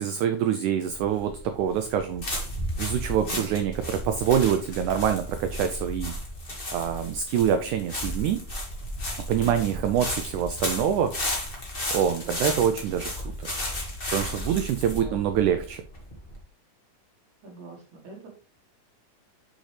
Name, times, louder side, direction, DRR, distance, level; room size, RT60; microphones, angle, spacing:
voice 1, 0.0-2.2 2.8-6.1 6.7-8.4 9.3-11.1 11.9-13.5 14.1-15.8, right 9 dB, 85° right, 8 dB, 1.7 m, -25 dB
sound 1, 0.9-16.4, left 1 dB, 30° left, 1.0 m, -34 dB
voice 2, 3.2-3.5 9.4-9.8 12.2-12.8 14.8-15.2 17.4-18.3, right 3 dB, 60° right, 1 dB, 2.5 m, -44 dB
6.4 x 6.3 x 3.3 m, 0.36 s
omnidirectional pair, 4.2 m